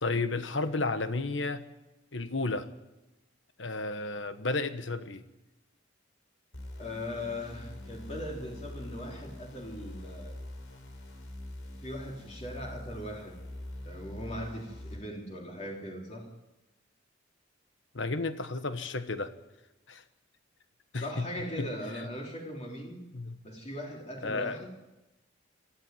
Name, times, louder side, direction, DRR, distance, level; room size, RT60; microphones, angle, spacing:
voice 1, 0.0-1.6 2.1-2.7 3.6-5.2 17.9-19.3 19.9-20.0 20.9-21.3 21.6-21.7 23.1-23.4 24.2-24.6, left 3 dB, 65° left, 11 dB, 1.4 m, -32 dB
sound 1, 6.5-15.0, left 1 dB, 85° left, 4.3 m, -44 dB
voice 2, 6.8-10.4 11.8-13.4 13.8-16.3 21.0-23.0 23.4-24.7, left 1 dB, 35° left, 0 dB, 3.5 m, -39 dB
22.5 x 13.5 x 9.3 m, 1.0 s
head